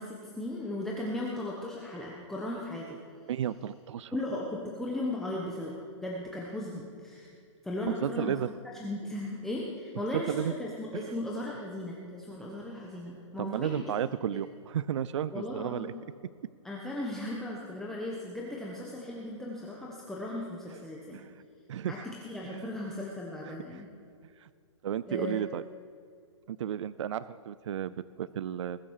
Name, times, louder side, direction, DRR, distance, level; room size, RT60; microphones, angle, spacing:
voice 1, 0.0-3.0 4.1-7.3 7.6-8.4 8.7-13.8 14.3-14.4 15.3-16.0 16.6-21.2 21.9-23.9 25.1-25.4, left 1 dB, ahead, -4 dB, 1.0 m, -37 dB
voice 2, 3.3-4.2 7.9-8.5 10.1-10.5 13.4-15.9 21.1-21.3 21.7-21.9 22.4-22.7 23.5-23.6 24.4-24.5 24.8-25.6 26.5-28.8, right 9 dB, 65° right, 16 dB, 0.4 m, -33 dB
20.5 x 7.5 x 6.4 m, 2.3 s
hypercardioid pair, 160°, 16 cm